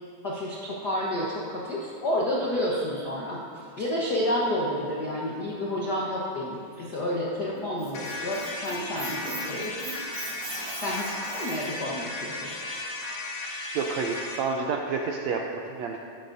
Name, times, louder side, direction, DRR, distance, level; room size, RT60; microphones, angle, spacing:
voice 1, 0.2-3.4 3.8-9.8 10.8-12.3, left 1 dB, 80° left, -4 dB, 0.9 m, -30 dB
Squeak, 7.5-11.8, right 3 dB, 55° right, 2.6 m, -39 dB
sound 1, 7.9-14.4, left 2 dB, 55° left, 2.3 m, -35 dB
voice 2, 13.7-16.0, right 5 dB, 80° right, 1 dB, 1.6 m, -29 dB
14.0 x 13.0 x 2.7 m, 2.3 s
omnidirectional pair, 3.8 m